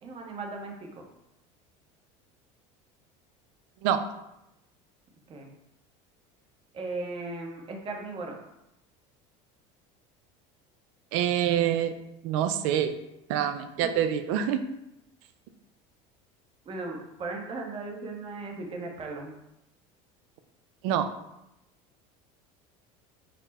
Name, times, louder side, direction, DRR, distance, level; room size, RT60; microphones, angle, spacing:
voice 1, 0.0-1.0 5.3-5.5 6.7-8.4 16.7-19.3, right 3 dB, 35° right, 2 dB, 0.8 m, -37 dB
voice 2, 11.1-11.9 12.2-13.0 13.3-14.6 20.8-21.1, right 10 dB, 75° right, 9 dB, 0.4 m, -26 dB
4.2 x 2.1 x 4.1 m, 0.88 s
supercardioid pair, 105°, 16 cm